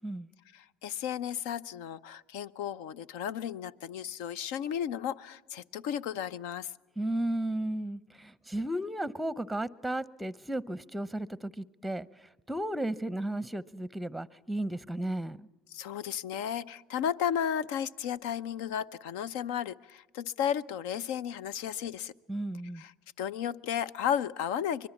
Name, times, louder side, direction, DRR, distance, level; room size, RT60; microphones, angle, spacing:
voice 1, 0.5-6.7 15.7-22.1 22.7-24.9, left 9 dB, 85° left, 0.7 m, -34 dB
voice 2, 7.0-12.1 12.5-15.5 22.3-22.8, right 1 dB, 5° right, 0.7 m, -34 dB
24.5 x 22.0 x 7.2 m
supercardioid pair, 95°, 0 cm